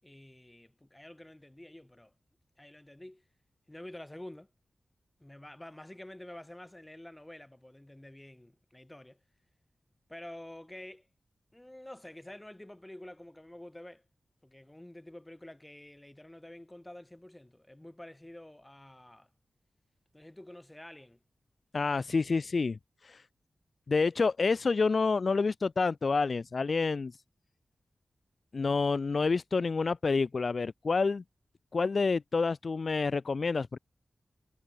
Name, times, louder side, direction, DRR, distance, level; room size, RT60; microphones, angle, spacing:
voice 1, 0.0-2.1 2.6-3.2 3.7-4.5 5.2-9.2 10.1-11.1 11.5-14.0 14.4-19.3 20.1-21.2, left 1 dB, 15° left, 5.3 m, -49 dB
voice 2, 21.7-23.2 23.9-27.1 28.5-31.2 31.7-33.8, left 4 dB, 60° left, 0.4 m, -28 dB
cardioid pair, 40°, 0 cm